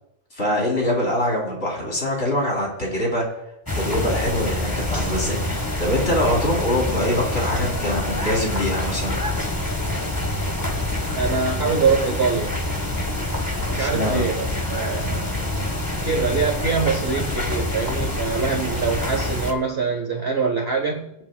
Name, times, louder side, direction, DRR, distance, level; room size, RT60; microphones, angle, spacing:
voice 1, 0.3-3.2 3.7-9.2 13.8-14.3, left 1 dB, 30° left, -3 dB, 3.7 m, -24 dB
sound 1, 3.7-19.5, left 1 dB, 15° left, 0.9 m, -26 dB
voice 2, 11.2-12.5 13.7-15.3 16.0-21.1, right 5 dB, 40° right, 2 dB, 1.1 m, -24 dB
25.0 x 8.6 x 2.3 m, 0.82 s
omnidirectional pair, 2.1 m